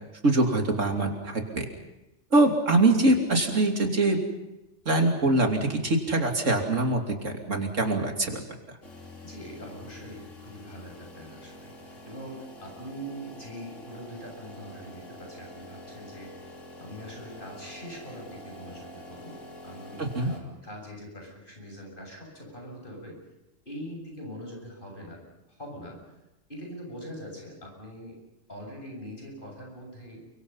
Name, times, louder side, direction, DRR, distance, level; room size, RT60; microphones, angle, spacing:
voice 1, 0.2-1.7 2.3-4.2 4.8-8.4 20.0-20.3, right 2 dB, 80° right, 3 dB, 3.3 m, -23 dB
sound 1, 8.8-20.4, left 1 dB, 80° left, 3.8 m, -46 dB
voice 2, 9.2-16.4 16.8-23.2 23.7-25.2 25.5-26.0 26.5-28.2 28.5-30.2, equal, 45° left, 1 dB, 7.7 m, -43 dB
30.0 x 24.0 x 5.7 m, 0.95 s
omnidirectional pair, 1.3 m